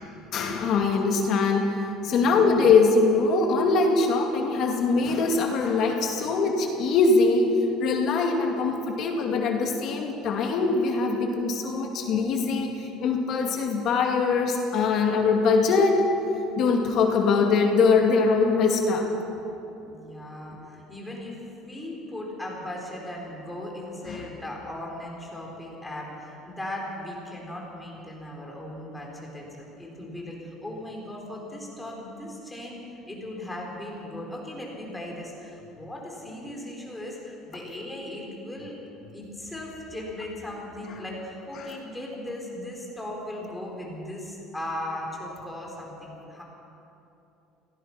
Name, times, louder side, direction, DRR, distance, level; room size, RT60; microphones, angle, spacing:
voice 1, 0.3-1.7 2.0-7.5 7.8-12.7 13.0-16.0 16.6-19.1 24.1-24.2, left 4 dB, 45° left, 1 dB, 2.3 m, -22 dB
voice 2, 2.0-2.4 19.8-21.4 21.6-38.7 39.1-46.4, left 1 dB, 5° left, -2 dB, 4.2 m, -38 dB
25.5 x 17.5 x 5.9 m, 2.9 s
cardioid pair, 160°, 0 cm